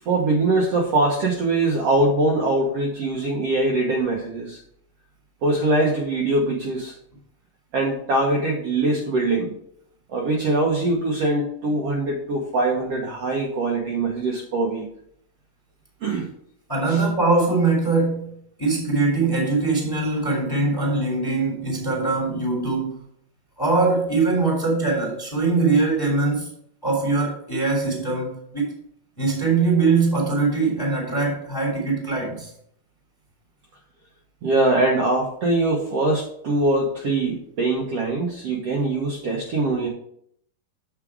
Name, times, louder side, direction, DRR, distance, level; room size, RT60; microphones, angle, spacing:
voice 1, 0.0-4.6 5.4-7.0 7.7-9.5 10.1-14.9 16.0-16.3 16.9-17.0 34.4-39.9, right 2 dB, 75° right, -1 dB, 1.4 m, -22 dB
voice 2, 16.7-18.3 18.6-23.0 23.6-26.5 26.8-28.7 29.2-32.5, right 3 dB, 10° left, -1 dB, 1.8 m, -22 dB
7.5 x 6.1 x 4.8 m, 0.68 s
omnidirectional pair, 4.5 m